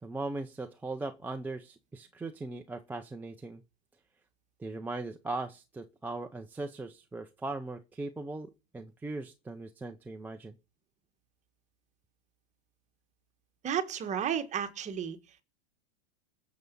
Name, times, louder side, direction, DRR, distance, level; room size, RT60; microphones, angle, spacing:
voice 1, 0.0-3.6 4.6-10.5, right 2 dB, 5° right, 0.6 m, -39 dB
voice 2, 13.6-15.2, right 8 dB, 20° right, 1.5 m, -32 dB
19.5 x 7.1 x 5.4 m
hypercardioid pair, 140°, 32 cm